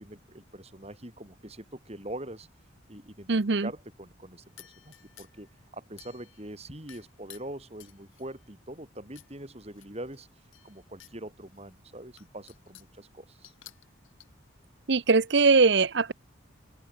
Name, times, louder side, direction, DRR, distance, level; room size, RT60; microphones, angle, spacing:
voice 1, 0.0-2.5 2.9-3.3 3.6-5.5 5.7-10.3 10.6-13.5, right 1 dB, 30° right, 6.3 m, -43 dB
voice 2, 3.3-3.7 14.9-16.1, right 4 dB, 60° right, 0.8 m, -21 dB
sound 1, 4.6-5.5 6.0-6.5 6.9-8.4 9.2-9.3 9.7-11.2 11.6-11.7 12.2-13.0 13.4-14.3, left 13 dB, 90° left, 4.8 m, -53 dB
open air
head